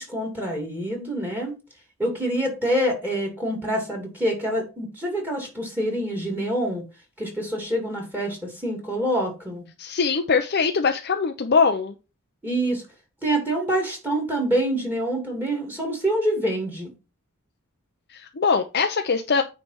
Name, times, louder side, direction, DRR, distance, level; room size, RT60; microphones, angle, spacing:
voice 1, 0.0-1.5 2.0-6.8 7.2-9.6 12.4-12.8 13.2-16.9, right 1 dB, 10° right, 1 dB, 2.3 m, -26 dB
voice 2, 9.8-11.9 18.1-19.4, left 5 dB, 50° left, 5 dB, 0.6 m, -22 dB
9.3 x 3.4 x 5.4 m, 0.29 s
head